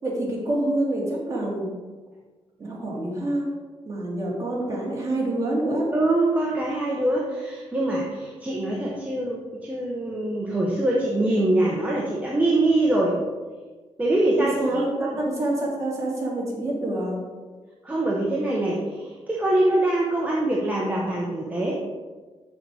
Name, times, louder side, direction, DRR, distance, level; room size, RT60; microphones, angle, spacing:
voice 1, 0.0-1.7 2.6-3.5 3.9-5.9 14.6-17.2, right 1 dB, 30° right, -4 dB, 2.3 m, -27 dB
voice 2, 5.9-13.2 14.0-15.2 17.8-21.7, right 1 dB, 15° right, -4 dB, 0.9 m, -24 dB
6.5 x 6.4 x 4.9 m, 1.4 s
wide cardioid pair, 160°, 11 cm